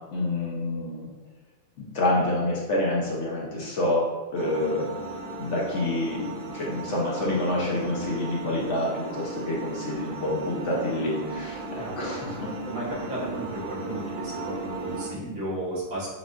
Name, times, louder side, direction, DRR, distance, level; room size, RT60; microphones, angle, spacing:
voice 1, 0.1-1.1 1.8-4.9 5.4-12.5, left 1 dB, 60° left, -4 dB, 0.9 m, -28 dB
sound 1, 4.3-15.1, right 2 dB, 85° right, 0.4 m, -36 dB
voice 2, 12.6-16.1, right 1 dB, 70° right, -7 dB, 1.7 m, -34 dB
6.9 x 2.4 x 2.4 m, 1.2 s
omnidirectional pair, 1.6 m